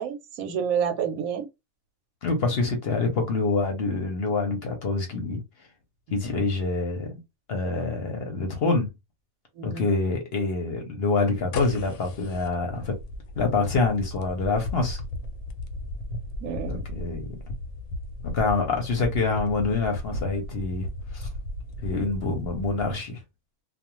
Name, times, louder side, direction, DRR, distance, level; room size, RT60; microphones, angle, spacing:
voice 1, 0.0-1.4 9.6-9.9 16.4-16.8, right 7 dB, 90° right, 1.1 m, -29 dB
voice 2, 2.2-5.4 6.1-7.2 7.5-8.9 9.6-13.0 13.4-15.0 16.6-17.3 18.2-21.3 21.8-23.2, left 3 dB, 55° left, 0.8 m, -26 dB
sound 1, 11.2-22.9, left 1 dB, 85° left, 1.1 m, -36 dB
2.4 x 2.3 x 2.9 m
omnidirectional pair, 1.5 m